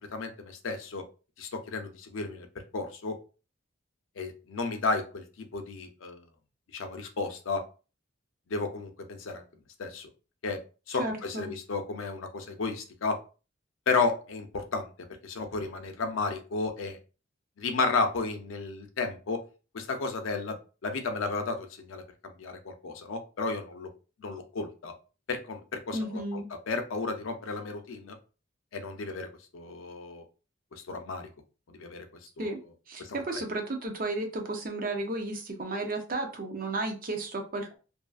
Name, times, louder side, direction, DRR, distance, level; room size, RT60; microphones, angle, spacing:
voice 1, 0.1-1.0 1.4-2.5 2.7-3.2 4.2-6.2 6.7-7.6 8.5-9.4 9.8-10.1 10.4-10.6 10.9-13.2 13.9-14.9 15.2-17.0 17.6-19.4 19.7-20.6 20.8-23.9 24.2-24.9 25.3-26.4 26.7-28.2 28.7-29.3 29.5-30.2 30.9-31.3 31.7-32.1 32.4-32.5 33.0-33.4, left 3 dB, 85° left, 6 dB, 0.5 m, -33 dB
voice 2, 11.0-11.5 25.9-26.5 32.4-32.6 32.9-37.8, right 2 dB, 45° right, 3 dB, 0.6 m, -33 dB
2.6 x 2.4 x 2.3 m, 0.34 s
head